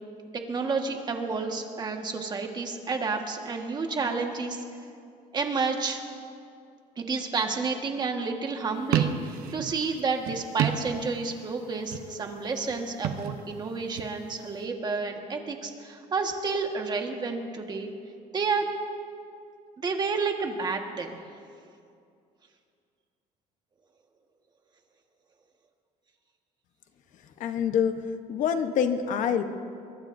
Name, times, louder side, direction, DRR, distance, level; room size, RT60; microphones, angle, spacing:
voice 1, 0.3-4.6 5.3-6.0 7.0-17.9 18.3-18.7 19.8-21.2, right 4 dB, 30° right, 3 dB, 1.5 m, -30 dB
sound 1, 8.8-11.5 11.7-12.3 12.9-14.2, right 9 dB, 80° right, 0.9 m, -30 dB
voice 2, 27.4-27.9 28.3-29.4, left 8 dB, 60° left, 7 dB, 1.0 m, -25 dB
23.5 x 23.0 x 2.7 m, 2.4 s
cardioid pair, 145°, 15 cm